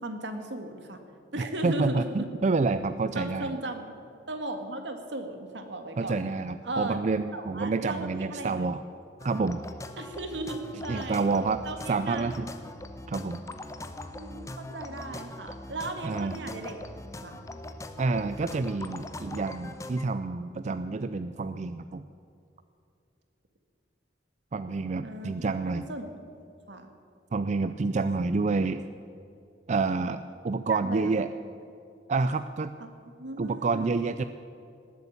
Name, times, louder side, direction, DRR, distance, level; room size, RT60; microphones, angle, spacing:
voice 1, 0.0-1.0 1.3-2.2 3.2-3.8 4.3-6.2 6.6-7.0 7.3-8.7 10.0-11.3 11.6-12.5 13.8-16.9 17.2-17.4 25.0-26.1 26.4-26.9 30.7-31.2 32.8-32.9 33.2-33.9, right 1 dB, 75° right, 6 dB, 1.8 m, -37 dB
voice 2, 1.4-3.5 6.0-8.8 9.2-9.6 10.9-11.6 11.9-12.5 13.1-13.4 16.0-16.3 18.0-22.1 24.5-25.8 27.3-28.8 29.7-31.3 32.1-32.7 33.4-34.2, right 3 dB, 40° right, 11 dB, 0.4 m, -28 dB
sound 1, 9.2-20.0, left 1 dB, 15° left, 0.8 m, -41 dB
19.5 x 8.5 x 8.6 m, 2.5 s
head